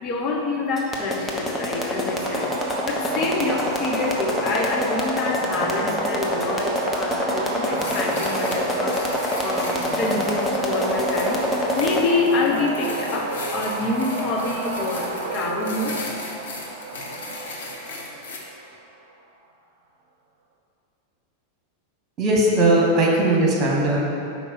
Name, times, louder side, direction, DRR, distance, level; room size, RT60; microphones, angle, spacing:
voice 1, 0.0-11.4 11.7-16.0, left 3 dB, 40° left, 0 dB, 0.9 m, -26 dB
sound 1, 0.8-12.0, left 1 dB, 10° left, 0.9 m, -26 dB
sound 2, 2.2-18.9, right 3 dB, 60° right, 0.7 m, -32 dB
sound 3, 7.7-18.4, left 2 dB, 65° left, 1.0 m, -37 dB
voice 2, 22.2-24.0, right 1 dB, 30° right, -2 dB, 1.4 m, -18 dB
5.4 x 4.4 x 5.7 m, 2.7 s
figure-of-eight pair, 90°, 0 cm